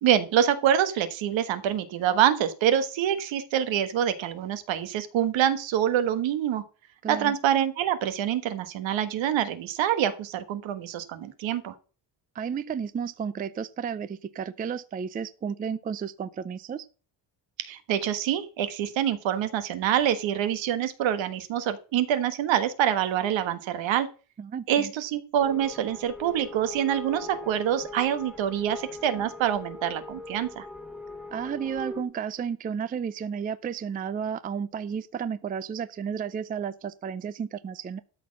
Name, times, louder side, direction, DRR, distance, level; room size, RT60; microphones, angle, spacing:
voice 1, 0.0-6.6 7.1-11.7 17.6-24.1 24.7-30.7, right 10 dB, 80° right, 11 dB, 1.5 m, -26 dB
voice 2, 7.0-7.3 12.3-16.8 24.4-24.9 31.3-38.0, right 7 dB, 20° right, 14 dB, 0.4 m, -32 dB
sound 1, 25.4-32.0, left 2 dB, 5° right, 1.3 m, -41 dB
13.0 x 4.4 x 7.2 m, 0.36 s
cardioid pair, 175°, 45 cm